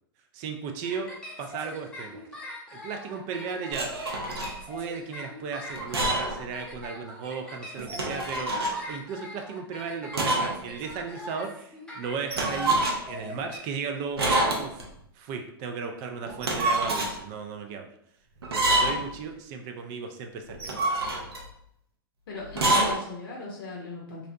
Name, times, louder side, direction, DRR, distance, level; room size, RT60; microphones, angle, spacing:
voice 1, 0.3-1.1 1.4-2.2 2.7-4.0 4.7-12.8 13.1-14.8 15.2-17.9 18.5-21.0, right 5 dB, 40° right, 4 dB, 0.3 m, -35 dB
sound 1, 0.8-13.6, left 1 dB, 5° left, 0.6 m, -43 dB
sound 2, 3.7-4.5 5.7-6.4 6.7-6.8 7.8-8.8 10.1-10.6 10.9-11.0 12.3-13.2 14.2-14.9 16.3-17.1 18.4-19.1 20.5-21.5 22.5-23.0, right 1 dB, 80° right, 0.6 m, -26 dB
voice 2, 22.3-24.3, left 2 dB, 65° left, -2 dB, 0.6 m, -37 dB
2.6 x 2.0 x 2.6 m, 0.70 s
hypercardioid pair, 110°, 13 cm